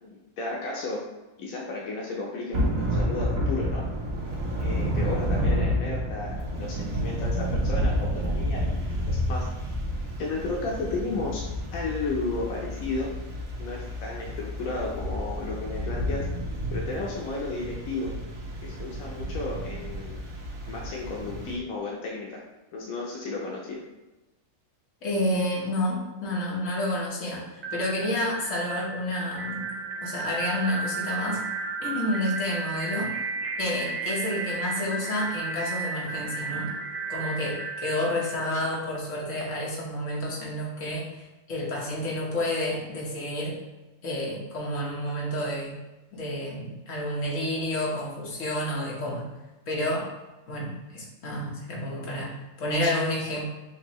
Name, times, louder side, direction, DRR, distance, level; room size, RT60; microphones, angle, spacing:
voice 1, 0.0-1.0 1.4-3.8 4.6-9.4 10.2-11.4 11.7-13.1 13.6-16.2 16.7-18.1 18.6-20.2 20.7-22.4 22.7-23.8, left 3 dB, 90° left, -3 dB, 1.2 m, -33 dB
Thunder / Rain, 2.5-21.6, equal, 80° right, 1.4 m, -30 dB
voice 2, 25.0-29.7 30.0-31.4 31.8-33.1 33.6-36.7 37.1-43.6 44.0-45.7 46.1-49.2 49.7-50.1 50.5-53.4, left 1 dB, 65° left, -4 dB, 1.5 m, -30 dB
sound 1, 27.6-39.4, right 4 dB, 55° right, 0.7 m, -34 dB
6.3 x 2.6 x 3.0 m, 1.1 s
omnidirectional pair, 1.4 m